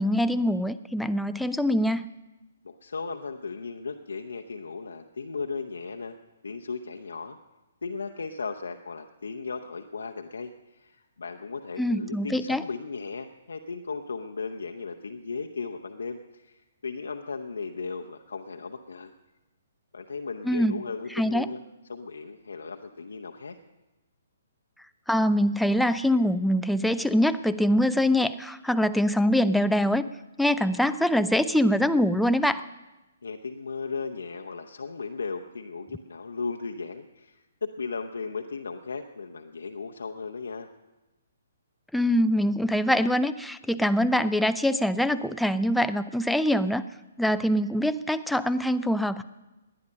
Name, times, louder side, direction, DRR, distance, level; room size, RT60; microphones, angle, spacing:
voice 1, 0.0-2.1 11.8-12.6 20.5-20.8 21.1-21.5 25.1-30.1 30.4-32.6 41.9-46.8 47.2-49.2, equal, ahead, 10 dB, 0.4 m, -24 dB
voice 2, 2.6-6.2 6.4-7.4 7.8-19.1 19.9-21.6 21.9-23.6 33.2-40.7, left 4 dB, 65° left, 4 dB, 0.8 m, -36 dB
19.0 x 10.5 x 6.5 m, 1.1 s
figure-of-eight pair, 125°, 0 cm